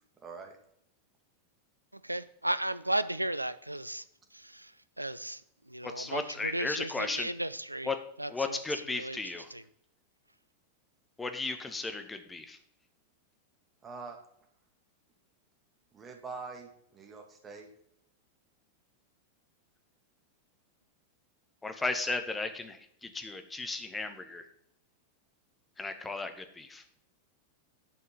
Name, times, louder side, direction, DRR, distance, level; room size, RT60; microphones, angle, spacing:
voice 1, 0.2-0.6 13.8-14.2 15.9-16.7 16.9-17.7, right 4 dB, 20° right, 3 dB, 2.3 m, -44 dB
voice 2, 2.0-4.0 4.4-4.7 5.0-5.4 5.7-7.9 8.2-8.6 8.9-9.2 9.5-9.6, right 1 dB, 85° right, 16 dB, 0.5 m, -34 dB
voice 3, 5.8-7.3 7.8-8.0 8.3-9.5 11.2-12.6 21.6-24.4 25.8-26.8, left 3 dB, 10° left, 7 dB, 1.4 m, -35 dB
11.0 x 5.4 x 5.5 m, 0.72 s
figure-of-eight pair, 90°, 0 cm